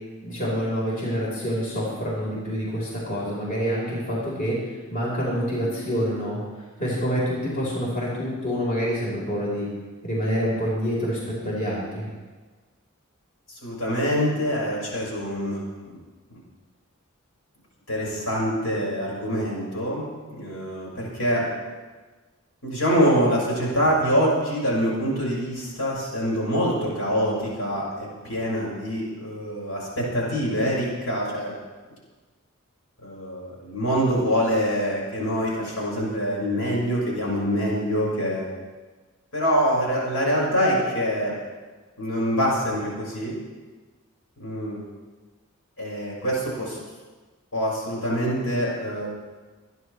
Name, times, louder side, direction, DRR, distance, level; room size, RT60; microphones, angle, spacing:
voice 1, 0.2-4.5 4.9-6.4 6.8-9.7 10.0-12.1, equal, 40° left, -6 dB, 4.5 m, -27 dB
voice 2, 13.5-16.0 17.9-20.0 20.3-21.4 22.6-31.6 33.0-38.4 39.3-41.3 42.0-43.3 44.4-44.8 45.8-46.8 47.5-49.1, equal, 80° left, -4 dB, 5.9 m, -25 dB
26.5 x 10.5 x 3.4 m, 1.3 s
head